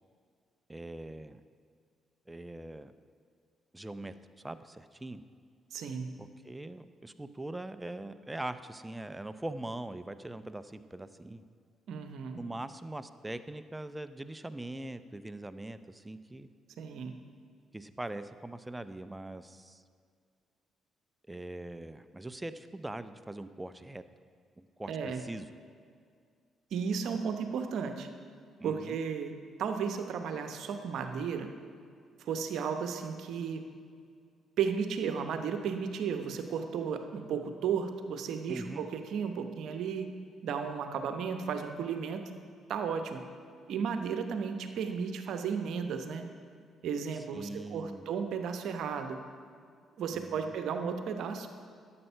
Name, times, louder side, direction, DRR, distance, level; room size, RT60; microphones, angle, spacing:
voice 1, 0.7-1.4 2.3-2.9 3.7-4.1 4.4-5.2 6.2-11.5 12.4-16.5 17.7-19.8 21.3-24.0 24.6-25.5 28.6-29.0 38.5-38.9 47.3-48.0 50.1-50.5, right 1 dB, 15° right, 12 dB, 0.6 m, -42 dB
voice 2, 5.7-6.1 11.9-12.4 16.8-17.2 24.9-25.2 26.7-28.1 28.6-31.5 32.2-33.7 34.6-40.1 40.4-42.2 42.7-43.2 43.7-46.2 46.8-49.2 50.0-51.5, right 6 dB, 70° right, 7 dB, 0.8 m, -34 dB
11.0 x 7.7 x 5.7 m, 2.1 s
supercardioid pair, 55°, 0 cm